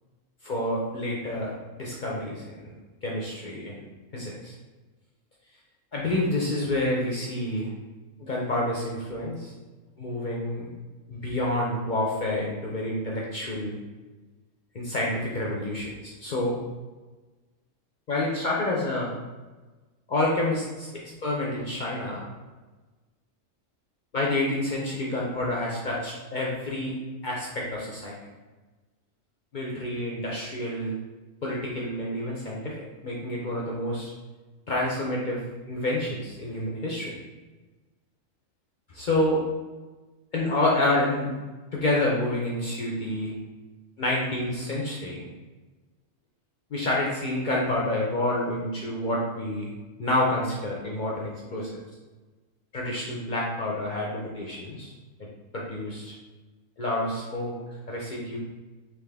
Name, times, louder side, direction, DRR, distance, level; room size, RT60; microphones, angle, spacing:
voice 1, 0.4-2.7 3.0-3.9 4.1-4.5 5.9-7.7 8.2-9.5 10.0-10.7 11.1-13.8 14.7-16.6 18.1-19.1 20.1-20.9 21.2-22.2 24.1-28.1 29.5-31.0 31.4-32.7 33.0-34.1 34.7-35.4 35.7-37.1 38.9-39.4 40.3-41.3 41.7-43.3 44.0-45.2 46.7-49.7 50.0-51.8 52.7-54.9 55.5-56.1 56.8-57.5 57.9-58.4, left 1 dB, 50° left, -4 dB, 0.6 m, -28 dB
3.7 x 2.9 x 3.4 m, 1.2 s
omnidirectional pair, 1.4 m